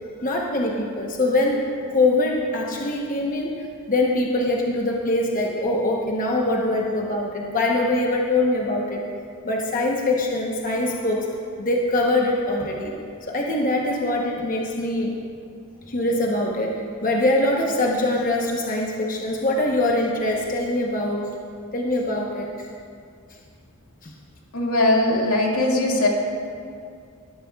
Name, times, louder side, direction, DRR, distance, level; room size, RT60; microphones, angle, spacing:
voice 1, 0.2-1.6 1.9-3.6 3.9-9.0 9.4-12.9 13.3-15.2 15.9-21.3 21.7-22.5 24.0-24.1, left 2 dB, 40° left, -1 dB, 1.0 m, -23 dB
voice 2, 24.5-26.1, left 2 dB, 90° left, -2 dB, 2.1 m, -20 dB
18.5 x 12.0 x 2.4 m, 2.3 s
head